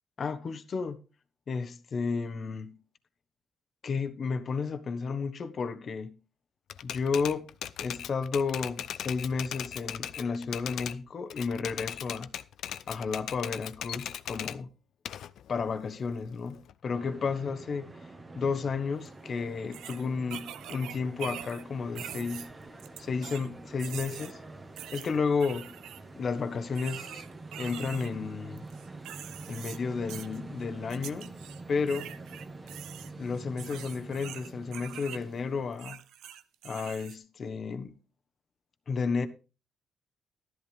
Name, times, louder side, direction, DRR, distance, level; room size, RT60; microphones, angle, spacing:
voice 1, 0.2-1.0 1.5-2.8 3.8-6.1 6.8-7.4 7.8-12.3 12.9-14.7 15.5-17.9 18.3-22.5 23.0-24.4 24.9-25.8 26.2-27.2 27.6-28.7 29.5-31.4 31.7-32.1 33.2-36.0 36.6-38.0 38.9-39.3, left 5 dB, 50° left, 1.2 m, -32 dB
Typewriter, 6.7-11.0 11.3-14.6 15.1-16.7, left 10 dB, 75° left, 0.5 m, -38 dB
sound 1, 16.9-35.8, right 3 dB, 25° right, 1.7 m, -46 dB
sound 2, 19.1-19.2 19.7-21.6 21.9-23.5 23.8-24.3 24.8-26.0 26.7-28.1 28.6-29.8 30.1-30.4 30.9-31.6 31.9-35.2 35.7-37.2, right 11 dB, 85° right, 0.7 m, -44 dB
12.5 x 11.0 x 3.4 m
cardioid pair, 90°, 0 cm